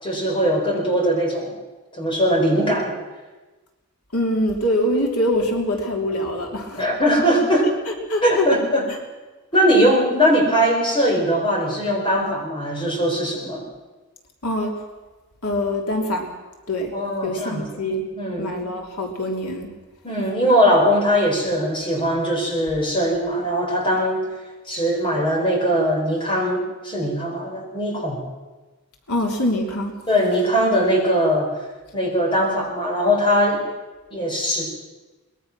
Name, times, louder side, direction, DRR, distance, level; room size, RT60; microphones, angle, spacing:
voice 1, 0.0-1.6 1.9-2.9 6.8-7.7 8.2-8.9 9.5-13.6 16.9-17.6 18.2-18.5 20.0-24.2 24.7-28.2 30.1-31.5 31.9-33.7 34.1-34.6, equal, 20° left, 0 dB, 4.4 m, -20 dB
voice 2, 4.1-6.9 7.9-8.5 14.4-14.7 15.4-16.3 16.7-16.9 17.2-18.0 18.4-19.7 29.1-29.9, left 1 dB, 85° left, 2 dB, 3.0 m, -24 dB
23.0 x 20.5 x 6.0 m, 1.2 s
head